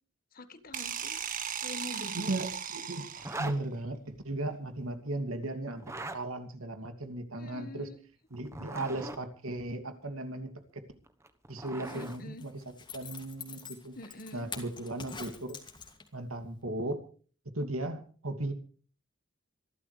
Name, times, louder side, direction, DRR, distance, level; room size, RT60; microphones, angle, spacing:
voice 1, 0.3-1.2 1.6-2.3 7.4-8.0 11.9-12.4 13.9-14.5, left 1 dB, 40° left, 11 dB, 1.6 m, -45 dB
sound 1, 0.7-3.7, right 8 dB, 40° right, 1.6 m, -37 dB
voice 2, 2.1-3.1 3.4-4.0 4.2-5.9 6.1-7.9 8.3-10.5 11.5-12.5 12.9-13.9 14.3-15.6 16.1-17.0 17.5-18.5, right 2 dB, 80° right, 7 dB, 2.8 m, -36 dB
Zipper (clothing), 3.2-3.6 5.7-6.2 8.3-9.2 11.1-12.2, right 2 dB, 15° right, 1.2 m, -40 dB
Zipper (clothing) 2, 11.7-16.3 16.6-16.7, left 5 dB, 20° left, 2.5 m, -46 dB
26.0 x 12.5 x 3.4 m, 0.42 s
head